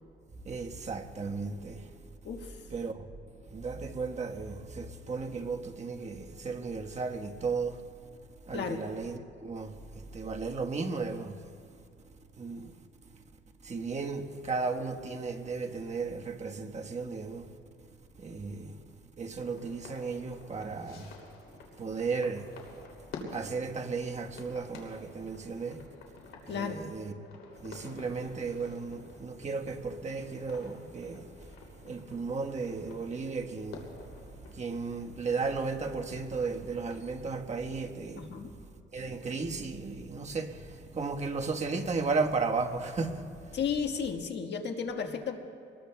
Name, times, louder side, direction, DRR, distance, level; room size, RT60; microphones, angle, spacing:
voice 1, 0.5-1.8 2.7-3.0 3.5-7.8 8.5-11.5 12.4-12.7 13.6-17.5 18.2-18.7 19.2-21.1 21.8-22.5 23.3-25.8 26.5-27.1 27.6-31.3 31.8-33.9 34.6-38.3 38.9-43.3, right 4 dB, 35° right, 1.3 m, -35 dB
voice 2, 2.2-2.6 8.5-8.8 26.5-26.8 38.2-38.5 43.5-45.4, left 6 dB, 60° left, 1.5 m, -33 dB
sound 1, 19.4-37.0, left 4 dB, 80° left, 2.9 m, -50 dB
26.0 x 21.0 x 2.3 m
cardioid pair, 90°, 20 cm